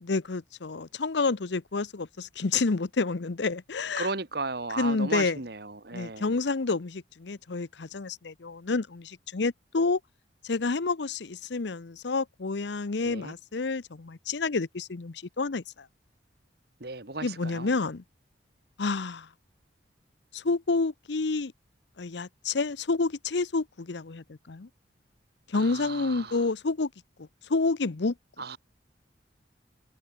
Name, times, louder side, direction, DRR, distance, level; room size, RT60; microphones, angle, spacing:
voice 1, 0.0-4.1 4.8-5.4 5.9-10.0 10.4-15.9 17.2-18.0 18.8-19.3 20.3-21.5 22.0-24.7 25.5-26.9 27.2-28.1, left 3 dB, 70° left, 0.7 m, -29 dB
voice 2, 4.0-6.3 13.0-13.3 16.8-17.7 25.5-26.4 28.4-28.6, right 3 dB, 55° right, 1.9 m, -35 dB
head